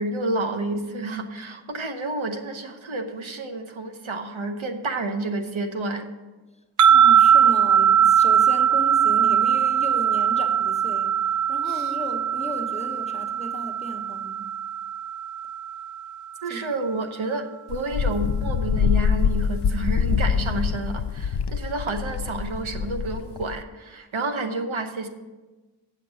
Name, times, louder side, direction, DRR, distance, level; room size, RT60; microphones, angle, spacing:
voice 1, 0.0-6.1 11.7-11.9 16.4-25.1, right 2 dB, 90° right, 0.9 m, -30 dB
sound 1, 6.8-16.1, right 8 dB, 45° right, 0.4 m, -20 dB
voice 2, 6.9-14.5 16.5-16.7, equal, 15° left, 1.1 m, -35 dB
Wind, 17.7-23.6, left 6 dB, 60° left, 0.5 m, -25 dB
8.3 x 6.7 x 6.3 m
wide cardioid pair, 45°, 46 cm